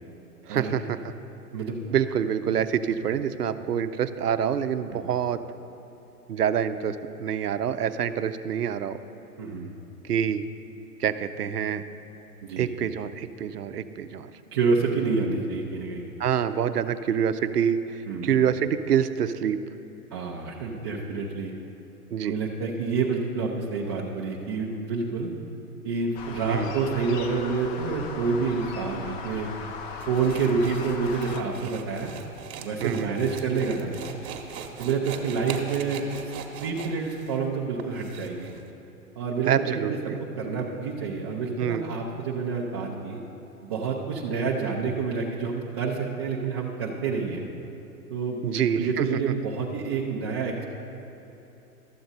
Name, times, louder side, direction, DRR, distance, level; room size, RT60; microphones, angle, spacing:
voice 1, 0.5-1.1 1.9-5.4 6.3-9.0 10.0-10.4 11.0-11.8 12.6-14.3 16.2-19.6 22.1-22.3 26.5-26.7 32.8-33.1 39.4-40.2 41.6-41.8 48.4-49.1, right 8 dB, 85° right, 11 dB, 0.6 m, -26 dB
voice 2, 9.4-9.7 12.4-12.7 14.5-16.1 18.1-18.4 20.1-21.5 22.2-25.3 25.8-29.5 30.1-32.1 32.6-33.9 34.8-38.5 39.2-40.0 40.4-43.2 43.6-47.5 48.1-50.7, right 5 dB, 20° right, -4 dB, 0.3 m, -28 dB
sound 1, 26.1-31.4, left 4 dB, 35° left, 0.7 m, -38 dB
sound 2, 30.0-38.6, right 7 dB, 45° right, 1.0 m, -41 dB
12.5 x 7.7 x 3.9 m, 3.0 s
figure-of-eight pair, 110°, 46 cm